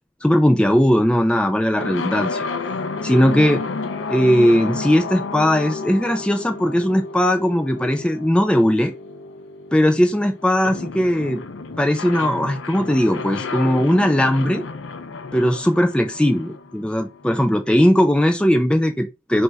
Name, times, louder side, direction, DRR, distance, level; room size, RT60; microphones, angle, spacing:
voice 1, 0.2-2.5 3.0-3.6 4.1-8.9 9.7-11.4 11.8-14.6 15.3-19.4, equal, 5° left, 0.4 m, -18 dB
sound 1, 1.8-17.5, left 3 dB, 65° left, 0.5 m, -31 dB
3.3 x 2.6 x 4.4 m
head